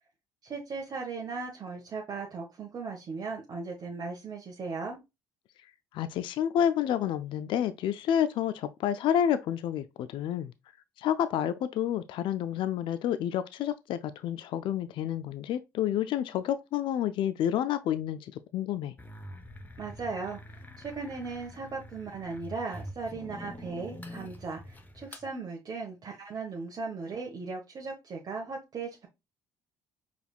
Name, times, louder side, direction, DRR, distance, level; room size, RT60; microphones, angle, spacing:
voice 1, 0.4-5.0 19.8-29.1, right 4 dB, 45° right, 1.1 m, -37 dB
voice 2, 5.9-10.5 11.0-18.9, left 10 dB, 65° left, 0.4 m, -29 dB
sound 1, 19.0-25.3, left 1 dB, 20° left, 0.9 m, -45 dB
4.9 x 3.3 x 2.4 m
supercardioid pair, 65°, 9 cm